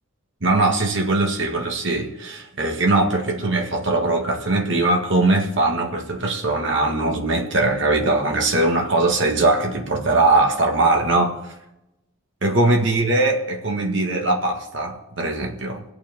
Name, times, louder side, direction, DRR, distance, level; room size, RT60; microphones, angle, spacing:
voice 1, 0.4-11.5 12.4-15.8, right 2 dB, 60° right, 1.7 m, -21 dB
26.0 x 8.8 x 3.6 m
head